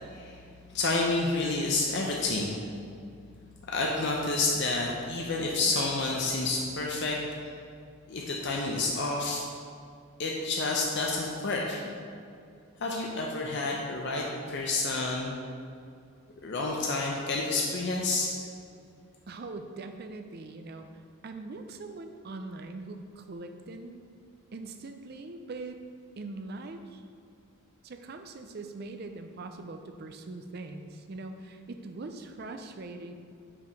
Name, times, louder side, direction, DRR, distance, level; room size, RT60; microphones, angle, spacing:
voice 1, 0.7-2.6 3.7-7.5 8.1-9.4 10.2-11.8 12.8-15.4 16.4-18.3, left 3 dB, 50° left, -1 dB, 0.6 m, -29 dB
voice 2, 19.3-20.9 21.2-24.0 24.5-25.8 26.2-27.0 27.8-33.1, right 3 dB, 45° right, 6 dB, 0.4 m, -42 dB
5.8 x 4.7 x 5.1 m, 2.4 s
head